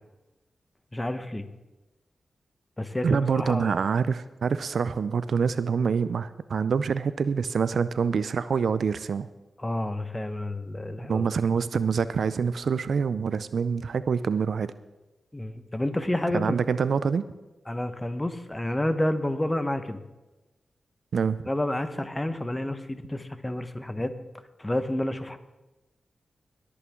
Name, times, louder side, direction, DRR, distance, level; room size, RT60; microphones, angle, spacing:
voice 1, 0.9-1.5 2.8-3.8 9.6-11.3 15.3-16.6 17.7-20.0 21.5-24.1 24.6-25.4, left 1 dB, 20° left, 10 dB, 1.2 m, -29 dB
voice 2, 3.0-9.3 11.1-14.7 16.3-17.2 21.1-21.4, right 6 dB, 75° right, 15 dB, 0.5 m, -26 dB
21.0 x 8.5 x 3.7 m, 1.1 s
cardioid pair, 45°, 0 cm